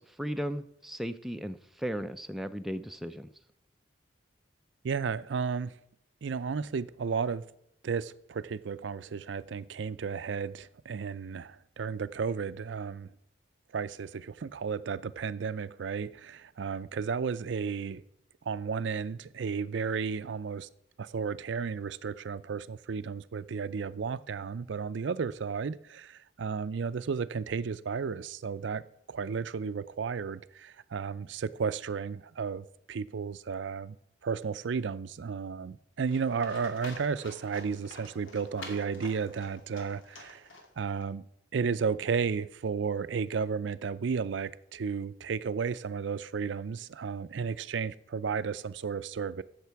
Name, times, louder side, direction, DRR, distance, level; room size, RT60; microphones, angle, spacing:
voice 1, 0.0-3.3, equal, ahead, 7 dB, 0.4 m, -36 dB
voice 2, 4.8-5.7 6.2-7.5 7.8-13.1 13.7-18.0 18.5-20.7 21.0-28.8 29.1-34.0 34.2-40.4 40.8-41.2 41.5-49.4, right 5 dB, 70° right, 15 dB, 0.4 m, -33 dB
Livestock farm animals working animals, 36.1-41.0, left 2 dB, 90° left, 2.3 m, -48 dB
15.0 x 6.6 x 4.6 m, 0.78 s
head